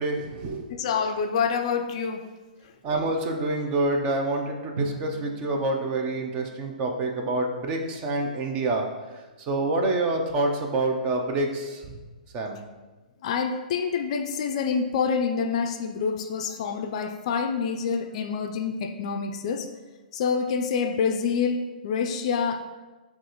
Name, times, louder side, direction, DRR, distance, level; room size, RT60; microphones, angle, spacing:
voice 1, 0.0-0.6 2.8-8.9 9.4-12.0 12.3-12.6, right 2 dB, 25° right, 2 dB, 0.4 m, -27 dB
voice 2, 0.7-2.3 13.2-19.7 20.1-22.6, left 6 dB, 45° left, 6 dB, 0.3 m, -27 dB
Drum, 4.8-7.4, right 2 dB, 85° right, 0.7 m, -39 dB
6.0 x 2.4 x 2.9 m, 1.2 s
hypercardioid pair, 155°, 5 cm